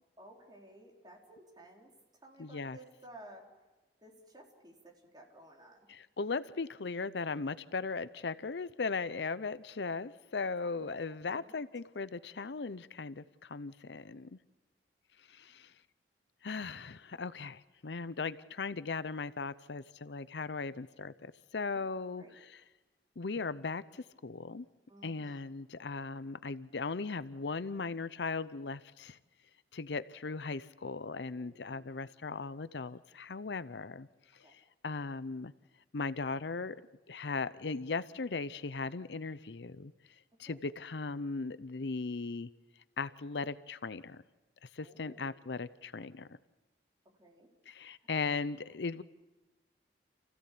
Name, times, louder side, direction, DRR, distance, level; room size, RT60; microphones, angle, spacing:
voice 1, 0.2-1.9 2.2-3.5 4.0-5.9 10.4-10.9 11.3-11.6 21.7-22.3 24.9-25.5 31.2-32.0 34.4-34.6 40.5-40.6 44.8-45.4 47.2-47.5, right 1 dB, 25° right, 0 dB, 4.0 m, -56 dB
voice 2, 2.4-2.8 5.9-14.4 15.3-15.7 16.4-22.6 23.2-24.7 25.0-29.2 29.7-34.1 34.5-35.5 35.9-36.8 37.1-39.9 40.4-42.5 43.0-44.2 44.7-46.4 47.7-49.0, left 4 dB, 75° left, 16 dB, 0.7 m, -38 dB
28.5 x 16.0 x 8.5 m, 1.1 s
head